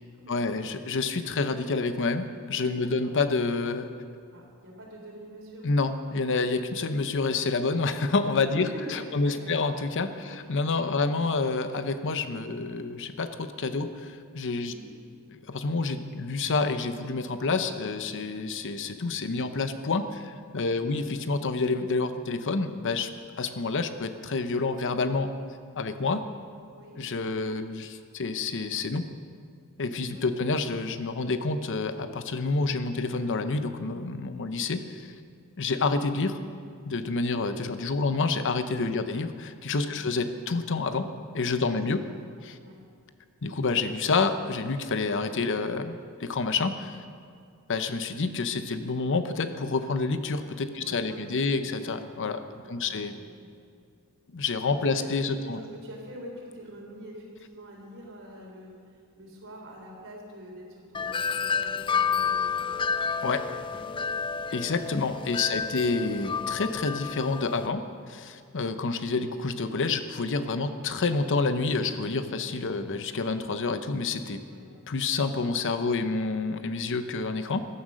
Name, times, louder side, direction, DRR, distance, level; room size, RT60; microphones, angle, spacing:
voice 1, 0.3-3.9 5.6-14.7 15.3-23.1 23.4-25.3 25.8-26.2 27.0-29.1 29.8-35.1 35.6-36.4 36.9-41.1 41.3-42.1 42.4-42.6 43.4-47.0 47.7-53.1 54.3-55.6 63.2-63.4 64.5-74.4 74.9-77.6, left 3 dB, 55° left, 10 dB, 0.8 m, -28 dB
voice 2, 2.7-3.1 4.3-5.7 8.4-9.6 10.1-10.5 10.8-11.2 14.6-14.9 20.7-21.0 26.7-27.0 30.1-30.4 38.0-38.2 39.8-40.1 41.6-41.8 42.6-42.8 50.7-51.8 52.6-53.5 54.7-55.1 55.4-62.8 63.4-64.1 65.5-65.7 74.5-74.7, equal, 60° right, -1 dB, 3.9 m, -46 dB
Wind chime, 60.9-67.7, left 5 dB, 20° left, 0.3 m, -30 dB
15.0 x 11.5 x 6.3 m, 2.2 s
head